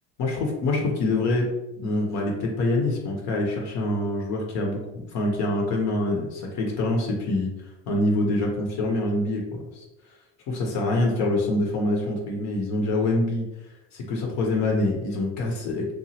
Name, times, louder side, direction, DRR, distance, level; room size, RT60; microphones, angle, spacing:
voice 1, 0.2-1.5 1.8-4.8 5.1-7.5 7.9-9.8 10.5-13.5 13.9-15.9, left 2 dB, 60° left, 0 dB, 0.7 m, -25 dB
2.8 x 2.4 x 2.8 m, 0.95 s
supercardioid pair, 105°, 31 cm